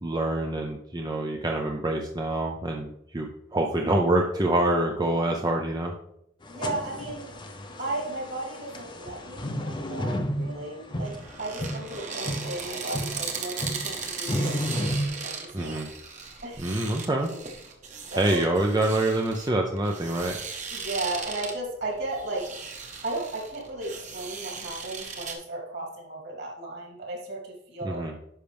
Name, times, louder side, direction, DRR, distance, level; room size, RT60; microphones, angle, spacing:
voice 1, 0.0-5.9 15.5-15.9 16.6-17.3 18.2-20.4 27.8-28.1, right 1 dB, 20° right, 2 dB, 0.5 m, -26 dB
sound 1, 6.4-15.1, equal, 25° left, 0.7 m, -33 dB
voice 2, 6.5-7.3 7.8-11.1 11.4-15.8 16.4-16.7 18.1-18.4 20.7-22.5 23.0-28.1, right 2 dB, 60° right, -2 dB, 3.1 m, -35 dB
sound 2, 11.0-25.3, right 5 dB, 40° right, 1.2 m, -37 dB
10.5 x 5.8 x 3.4 m, 0.76 s
head